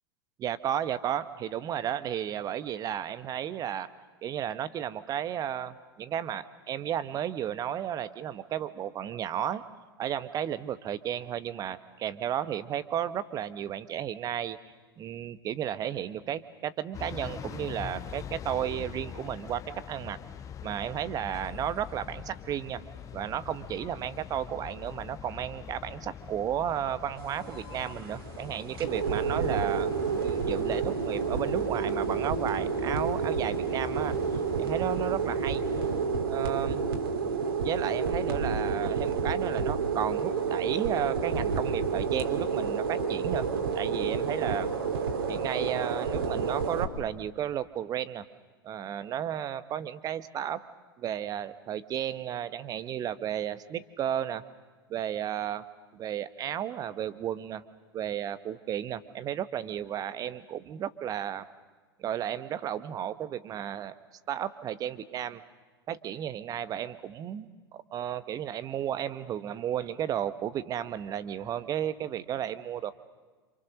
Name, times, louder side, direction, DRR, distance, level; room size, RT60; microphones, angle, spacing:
voice 1, 0.4-3.9 4.2-9.6 10.0-14.6 15.0-19.6 19.9-20.2 20.6-22.8 23.1-34.2 34.6-35.6 36.3-36.8 37.6-43.5 43.7-44.7 45.3-48.3 48.6-50.6 51.0-54.4 54.9-55.6 55.9-57.6 57.9-61.4 62.0-63.9 64.3-65.4 65.9-72.9, right 10 dB, 30° right, 14 dB, 1.2 m, -33 dB
sound 1, 16.9-36.1, left 8 dB, 25° left, 1.2 m, -43 dB
sound 2, 27.2-46.8, right 5 dB, 65° right, 2.9 m, -30 dB
27.5 x 27.5 x 6.5 m, 1.3 s
figure-of-eight pair, 90°, 13 cm